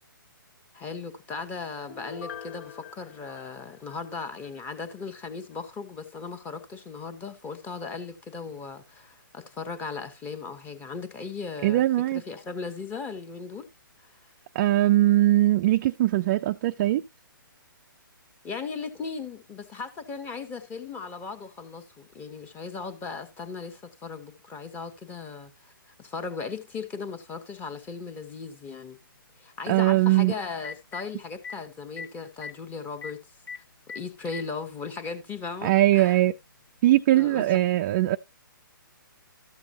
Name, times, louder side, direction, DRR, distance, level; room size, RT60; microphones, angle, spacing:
voice 1, 0.7-11.8 12.1-13.7 18.4-25.7 26.0-29.0 29.4-33.2 33.9-36.2 37.1-37.4, left 4 dB, 15° left, 1.3 m, -37 dB
Piano, 1.9-4.6 5.0-5.1, left 7 dB, 55° left, 1.5 m, -44 dB
voice 2, 11.6-12.2 14.5-17.0 29.7-30.3 35.6-36.3 36.8-38.2, right 15 dB, 30° right, 0.4 m, -21 dB
Telephone, 30.1-30.2 30.5-31.0 31.4-31.6 32.0-32.1 32.3-32.5 33.0-33.1 33.5-33.6 33.9-34.5 35.5-35.6 37.0-37.1, left 5 dB, 85° left, 0.9 m, -38 dB
13.0 x 7.0 x 2.7 m
hypercardioid pair, 150°, 11 cm